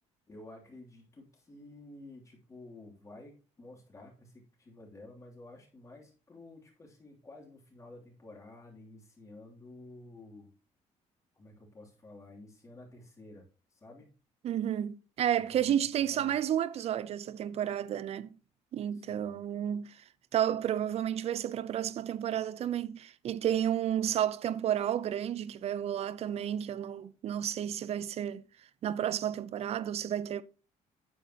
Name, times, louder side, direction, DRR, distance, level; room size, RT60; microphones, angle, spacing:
voice 1, 0.3-10.5 11.4-13.5 13.7-14.1 15.3-15.8 16.1-16.3 18.9-19.4, left 2 dB, 25° left, 3.0 m, -51 dB
voice 2, 14.4-18.3 18.7-20.0 20.3-28.4 28.8-30.4, right 10 dB, 55° right, 0.6 m, -31 dB
9.1 x 7.3 x 2.9 m
cardioid pair, 130°, 13 cm